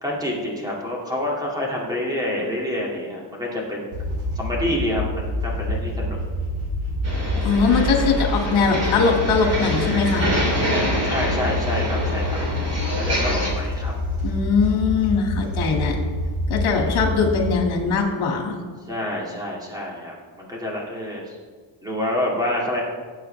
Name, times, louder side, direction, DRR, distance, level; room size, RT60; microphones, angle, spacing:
voice 1, 0.0-3.9 4.4-6.2 11.0-12.4 12.9-13.9 16.8-17.0 18.9-21.4 21.8-22.8, left 1 dB, 10° right, -3 dB, 2.4 m, -27 dB
sound 1, 3.9-17.5, left 1 dB, 70° right, 2.7 m, -26 dB
sound 2, 7.0-13.5, equal, 30° right, 2.6 m, -27 dB
voice 2, 7.4-10.3 14.2-16.0 16.5-18.6, left 5 dB, 70° left, 2 dB, 2.2 m, -21 dB
18.0 x 8.0 x 3.4 m, 1.5 s
cardioid pair, 165°, 49 cm